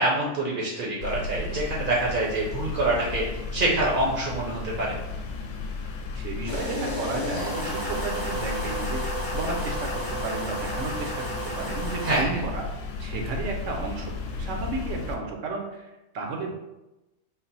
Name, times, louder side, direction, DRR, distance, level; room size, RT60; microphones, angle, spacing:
voice 1, 0.0-3.2 3.5-5.0 12.0-12.4, right 1 dB, 50° right, -4 dB, 0.7 m, -26 dB
sound 1, 1.0-15.1, left 4 dB, 75° left, 0.9 m, -34 dB
voice 2, 6.1-9.0 9.3-12.6 13.0-16.5, right 3 dB, 70° right, 1 dB, 1.0 m, -33 dB
sound 2, 6.5-12.2, right 1 dB, 20° left, 0.6 m, -32 dB
3.9 x 2.1 x 4.0 m, 0.98 s
omnidirectional pair, 1.4 m